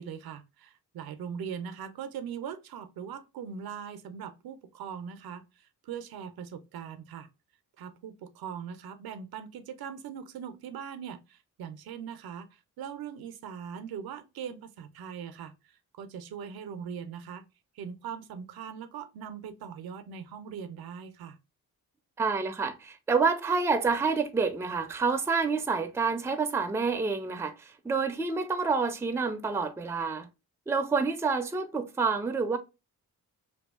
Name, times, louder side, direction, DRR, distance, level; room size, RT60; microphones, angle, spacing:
voice 1, 0.0-7.3 7.8-17.4 17.8-21.4, right 7 dB, 75° right, 0.5 m, -41 dB
voice 2, 22.2-30.3 30.7-32.6, right 4 dB, 10° right, 0.3 m, -28 dB
2.6 x 2.3 x 2.3 m
cardioid pair, 70°, 37 cm